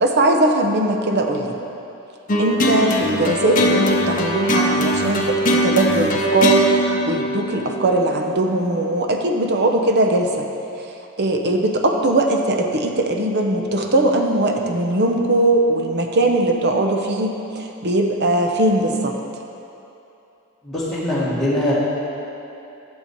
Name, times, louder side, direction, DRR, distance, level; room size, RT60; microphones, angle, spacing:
voice 1, 0.0-1.6 2.4-10.5 11.2-19.2, right 1 dB, 50° right, 3 dB, 0.8 m, -20 dB
sound 1, 2.3-8.7, equal, 40° left, 0.8 m, -21 dB
voice 2, 20.6-21.7, left 1 dB, ahead, -10 dB, 1.8 m, -22 dB
11.0 x 7.3 x 4.6 m, 2.8 s
head